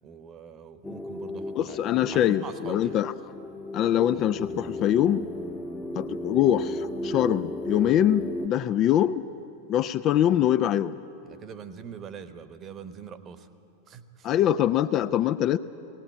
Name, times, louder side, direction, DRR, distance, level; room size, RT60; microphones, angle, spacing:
voice 1, 0.0-1.8 2.1-3.0 11.2-13.5 13.9-14.3, right 7 dB, 30° right, 12 dB, 1.0 m, -43 dB
sound 1, 0.8-8.5, left 1 dB, 10° left, 0.9 m, -35 dB
voice 2, 1.5-3.1 3.7-5.3 5.9-9.2 9.7-11.0 14.2-15.6, left 11 dB, 35° left, 13 dB, 0.4 m, -23 dB
18.5 x 18.0 x 8.4 m, 2.8 s
figure-of-eight pair, 90°, 0 cm